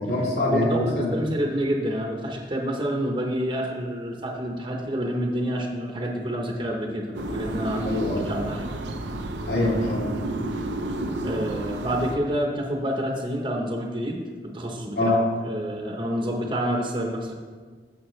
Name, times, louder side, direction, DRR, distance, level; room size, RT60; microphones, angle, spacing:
voice 1, 0.0-1.1 7.8-8.2 9.4-10.2 14.9-15.2, left 1 dB, 70° left, -5 dB, 3.0 m, -24 dB
voice 2, 0.7-8.7 9.6-9.7 11.2-15.1 15.4-17.3, equal, 30° right, 0 dB, 0.9 m, -28 dB
sound 1, 7.1-12.2, right 1 dB, 90° right, 0.8 m, -31 dB
15.0 x 6.9 x 3.2 m, 1.5 s
head